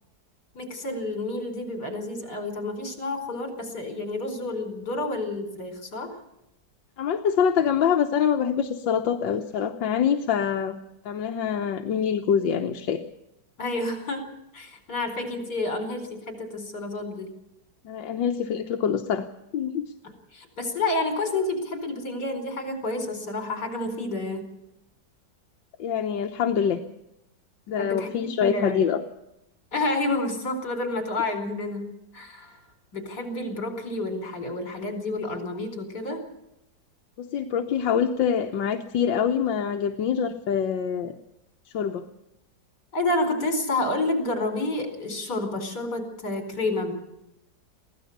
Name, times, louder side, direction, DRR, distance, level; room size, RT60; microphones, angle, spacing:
voice 1, 0.5-6.2 13.6-14.3 14.5-17.3 20.0-24.4 27.8-28.9 29.7-32.6 32.9-36.2 42.9-46.9, left 2 dB, 65° left, 6 dB, 5.2 m, -29 dB
voice 2, 7.0-10.8 11.1-13.0 17.9-19.3 19.5-19.9 25.8-26.8 27.7-29.0 37.2-41.1 41.7-42.1, left 8 dB, 85° left, 4 dB, 1.8 m, -25 dB
23.0 x 17.0 x 6.7 m, 0.84 s
omnidirectional pair, 2.0 m